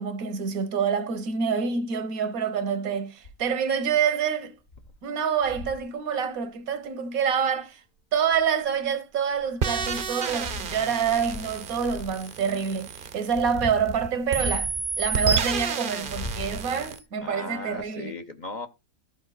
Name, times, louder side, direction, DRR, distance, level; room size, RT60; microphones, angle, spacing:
voice 1, 0.0-4.5 5.0-7.8 8.1-18.1, right 7 dB, 85° right, 1.5 m, -27 dB
sound 1, 3.2-3.5 4.1-4.2 4.7-4.9 5.4-5.9 7.3-7.4 8.1-8.8 9.3-12.2 12.9-15.7 16.0-17.0 17.8-17.9, left 2 dB, 70° left, 4.1 m, -38 dB
sound 2, 9.6-13.9 14.3-17.0, right 5 dB, 45° right, 0.8 m, -30 dB
voice 2, 17.2-18.7, left 3 dB, 35° left, 1.0 m, -37 dB
14.0 x 5.4 x 4.0 m
omnidirectional pair, 1.5 m